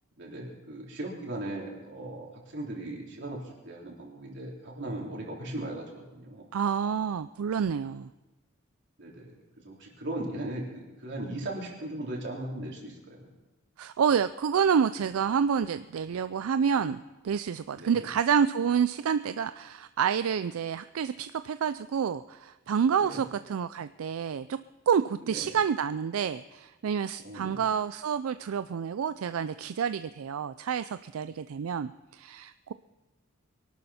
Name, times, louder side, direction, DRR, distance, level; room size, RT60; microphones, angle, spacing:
voice 1, 0.2-6.5 9.0-13.3 17.8-18.0 23.0-23.3 25.2-25.5 27.2-27.6, right 1 dB, 60° right, -2 dB, 3.5 m, -38 dB
voice 2, 6.5-8.1 13.8-24.6 24.9-32.7, right 7 dB, 80° right, 12 dB, 0.4 m, -28 dB
23.0 x 12.0 x 4.2 m, 1.1 s
head